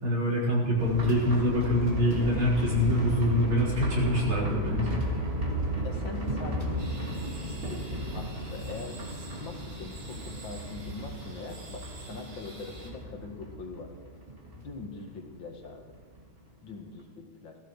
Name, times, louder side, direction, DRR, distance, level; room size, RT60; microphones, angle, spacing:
voice 1, 0.0-4.9, left 1 dB, 75° right, -4 dB, 5.0 m, -25 dB
sound 1, 0.8-16.3 16.5-16.6 17.0-17.1, right 1 dB, 25° right, 2.3 m, -34 dB
voice 2, 5.8-6.8 7.2-13.9 14.5-16.0 16.6-17.6, left 4 dB, 65° left, 3 dB, 2.7 m, -43 dB
sound 2, 6.8-12.9, right 3 dB, 55° right, 2.7 m, -48 dB
18.0 x 15.5 x 4.9 m, 1.3 s
omnidirectional pair, 2.2 m